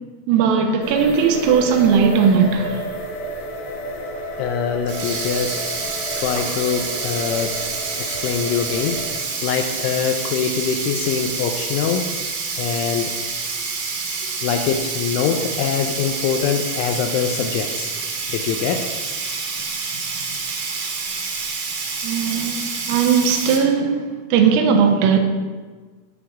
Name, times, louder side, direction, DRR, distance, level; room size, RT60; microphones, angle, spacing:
voice 1, 0.3-2.8 22.0-24.1 24.3-25.2, right 6 dB, 80° right, 3.5 m, -17 dB
sound 1, 0.8-9.2, equal, 65° left, 4.6 m, -31 dB
voice 2, 4.4-5.6 6.2-7.6 8.0-12.2 12.6-13.2 14.4-17.9 18.3-18.9, left 7 dB, 85° left, 2.8 m, -23 dB
Sink (filling or washing), 4.9-23.6, right 4 dB, 60° right, 2.3 m, -28 dB
17.0 x 7.2 x 3.7 m
omnidirectional pair, 5.9 m